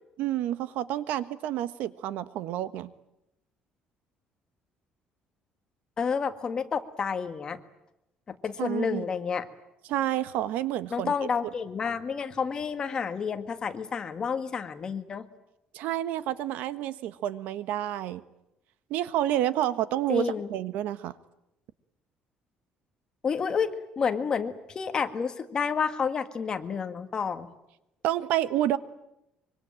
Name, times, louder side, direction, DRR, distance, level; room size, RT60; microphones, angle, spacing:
voice 1, 0.2-2.9 8.6-9.0 9.9-11.1 15.7-18.2 18.9-21.1 28.0-28.8, right 12 dB, 75° right, 13 dB, 1.4 m, -29 dB
voice 2, 6.0-7.6 8.3-9.5 10.9-15.3 20.1-20.5 23.2-27.5, left 6 dB, 30° left, 8 dB, 1.7 m, -30 dB
25.0 x 24.5 x 8.9 m, 0.87 s
cardioid pair, 165°, 3 cm